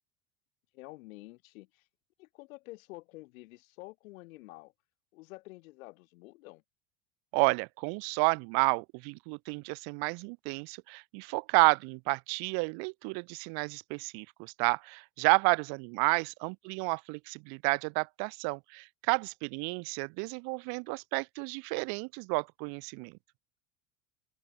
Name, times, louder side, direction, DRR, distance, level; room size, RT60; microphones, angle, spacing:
voice 1, 0.7-1.9 2.2-4.7 5.1-6.6 16.0-16.2, left 21 dB, 80° left, 5.2 m, -49 dB
voice 2, 7.3-23.1, right 36 dB, 65° right, 1.6 m, -31 dB
supercardioid pair, 120°, 40 cm